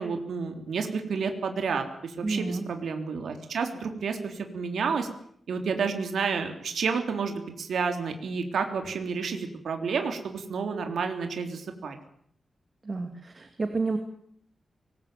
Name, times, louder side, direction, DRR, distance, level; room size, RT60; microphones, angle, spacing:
voice 1, 0.0-5.1 5.5-12.0, right 5 dB, 75° right, 5 dB, 3.5 m, -30 dB
voice 2, 2.2-2.6 12.8-14.0, right 3 dB, 30° right, 7 dB, 2.4 m, -30 dB
24.0 x 20.5 x 9.2 m, 0.66 s
wide cardioid pair, 180°, 0 cm